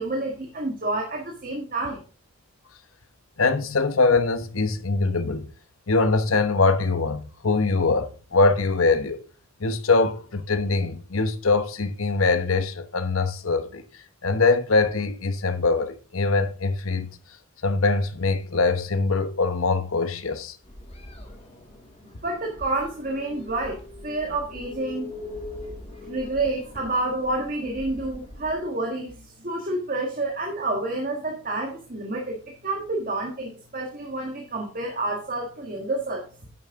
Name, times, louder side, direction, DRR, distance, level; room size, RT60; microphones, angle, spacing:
voice 1, 0.0-2.0 22.2-25.1 26.0-36.2, right 2 dB, 40° right, 1.6 m, -29 dB
voice 2, 3.4-5.5 5.9-9.2 9.6-13.8 14.2-17.1 17.6-20.5, left 3 dB, 85° left, 1.1 m, -23 dB
sound 1, 20.6-28.6, left 2 dB, 30° left, 1.9 m, -42 dB
10.5 x 7.5 x 3.7 m
head